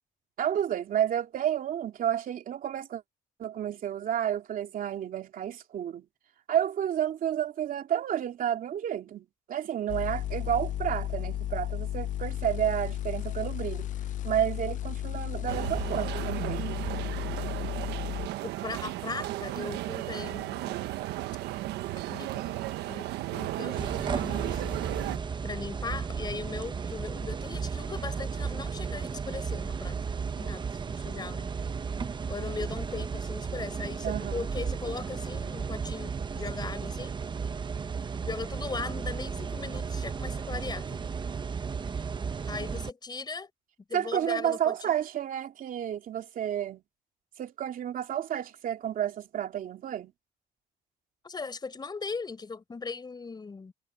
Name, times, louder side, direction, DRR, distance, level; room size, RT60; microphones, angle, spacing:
voice 1, 0.4-3.0 3.4-6.0 6.5-13.9 14.2-16.8 34.0-34.4 43.9-46.8 47.4-50.1, right 10 dB, 55° right, 2.9 m, -31 dB
sound 1, 9.9-18.3, left 12 dB, 50° left, 0.5 m, -34 dB
sound 2, 15.5-25.2, right 15 dB, 85° right, 1.3 m, -34 dB
voice 2, 18.4-20.9 22.1-24.7 25.4-30.0 30.3-31.5 32.3-37.2 38.2-41.1 42.5-43.5 43.9-45.0 51.2-53.7, left 4 dB, 25° left, 4.7 m, -39 dB
sound 3, 23.8-42.9, right 5 dB, 25° right, 0.9 m, -34 dB
cardioid pair, 110°, 17 cm